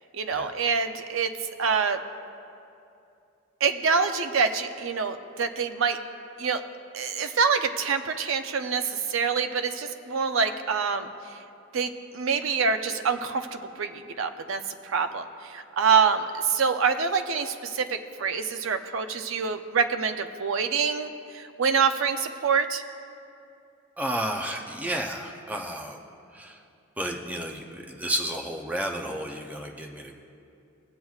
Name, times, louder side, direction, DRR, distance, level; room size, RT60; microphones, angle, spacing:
voice 1, 0.1-1.3 1.6-2.0 3.6-6.0 6.4-6.6 6.9-11.1 11.7-22.8, right 5 dB, 75° right, 8 dB, 0.5 m, -26 dB
voice 2, 24.0-26.0 26.3-26.6 27.0-30.1, right 1 dB, 5° right, 1 dB, 0.5 m, -32 dB
21.0 x 7.7 x 2.4 m, 2.6 s
head